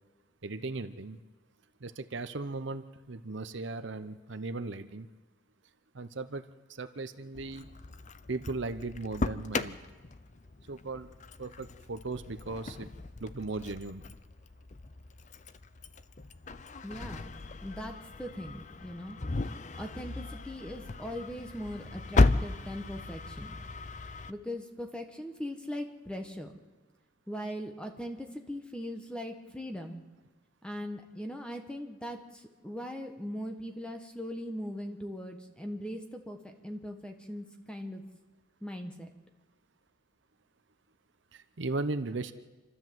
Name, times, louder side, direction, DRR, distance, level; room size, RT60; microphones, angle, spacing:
voice 1, 0.4-1.2 1.8-5.1 5.9-6.4 6.7-7.7 8.3-9.8 10.7-11.1 11.4-12.9 13.2-14.1 41.3-42.3, right 3 dB, 60° right, 10 dB, 0.8 m, -37 dB
Engine starting, 7.4-24.3, left 3 dB, 35° left, 0.5 m, -35 dB
voice 2, 16.8-17.3 17.6-19.2 19.8-23.5 24.3-26.5 27.3-30.0 30.6-38.0 38.6-39.1, equal, 5° left, 4 dB, 1.3 m, -40 dB
27.5 x 13.0 x 7.7 m, 1.3 s
head